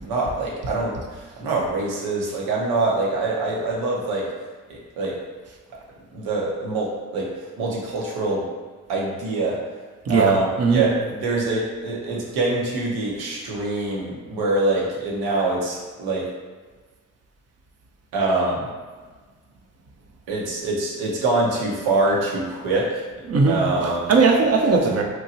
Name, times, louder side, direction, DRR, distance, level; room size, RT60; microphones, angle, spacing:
voice 1, 0.0-4.3 4.7-5.2 6.1-8.5 8.9-9.6 10.1-16.3 18.1-18.7 20.3-23.0 23.5-24.1, right 2 dB, 90° right, -3 dB, 0.7 m, -24 dB
voice 2, 23.3-23.6 24.1-25.0, right 4 dB, 45° right, 1 dB, 0.6 m, -18 dB
2.9 x 2.2 x 2.6 m, 1.4 s
supercardioid pair, 45°, 37 cm